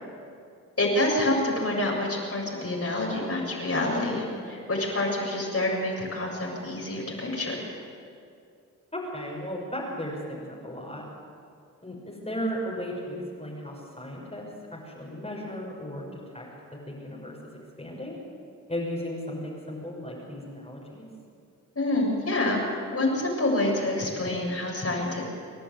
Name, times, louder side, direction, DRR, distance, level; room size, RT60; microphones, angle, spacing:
voice 1, 0.8-7.6 21.8-22.6 22.9-25.2, left 1 dB, 45° left, -2 dB, 7.6 m, -27 dB
voice 2, 8.9-11.0 11.8-16.5 16.9-18.2 18.7-21.1, equal, 20° left, -4 dB, 6.3 m, -35 dB
29.0 x 11.5 x 9.5 m, 2.3 s
cardioid pair, 65°, 32 cm